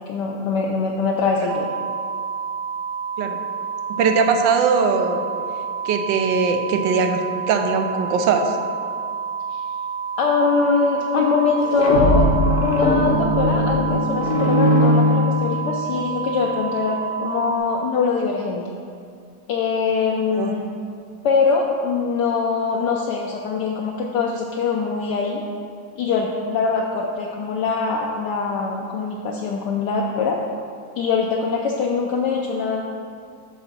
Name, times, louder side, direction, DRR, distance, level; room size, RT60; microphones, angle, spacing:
voice 1, 0.1-1.7 9.5-9.6 10.2-12.3 12.6-18.6 19.5-20.7 21.2-25.4 26.0-30.4 31.0-32.8, left 4 dB, 75° left, 0 dB, 1.1 m, -22 dB
sound 1, 1.5-17.6, right 6 dB, 65° right, 1.7 m, -29 dB
voice 2, 3.9-5.2 5.8-8.6 20.3-20.7, right 5 dB, 85° right, 5 dB, 1.3 m, -20 dB
sound 2, 11.6-15.8, equal, 45° left, 0.9 m, -19 dB
7.9 x 3.9 x 5.9 m, 2.3 s
omnidirectional pair, 2.0 m